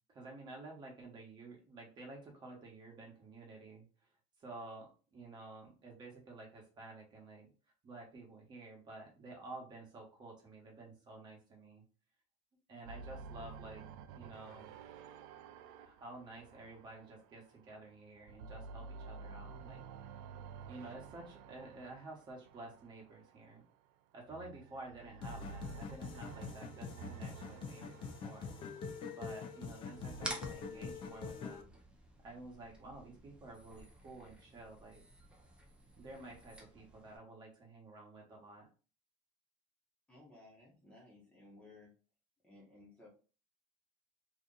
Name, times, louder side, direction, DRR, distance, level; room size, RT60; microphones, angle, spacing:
voice 1, 0.1-3.8 4.4-7.5 7.8-11.8 12.7-13.8 14.1-14.8 15.8-19.8 20.6-23.6 24.1-28.5 29.1-31.7 32.2-35.0 36.0-38.6, right 2 dB, 30° right, -1 dB, 1.1 m, -51 dB
sound 1, 12.9-17.8 18.2-23.5 24.2-30.3, right 5 dB, 90° right, 0.4 m, -51 dB
sound 2, 25.2-31.6, left 5 dB, 35° left, 0.5 m, -45 dB
sound 3, 30.2-37.2, right 1 dB, 5° right, 0.6 m, -50 dB
voice 2, 40.1-41.9 42.4-43.1, left 2 dB, 10° left, -3 dB, 1.0 m, -58 dB
2.8 x 2.5 x 3.8 m, 0.35 s
cardioid pair, 150°, 14 cm